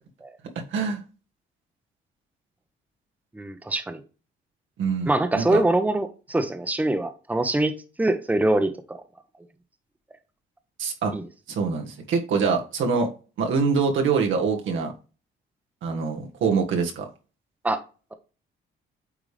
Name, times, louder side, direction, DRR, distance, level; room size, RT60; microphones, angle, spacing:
voice 1, 3.3-4.0 5.1-9.0 11.1-11.2 17.6-17.8, right 2 dB, 10° right, 0.9 m, -24 dB
voice 2, 4.8-5.6 10.8-11.1 11.5-13.1 13.4-14.9 15.8-17.1, right 5 dB, 75° right, 1.6 m, -24 dB
8.9 x 3.5 x 3.3 m
cardioid pair, 90°, 20 cm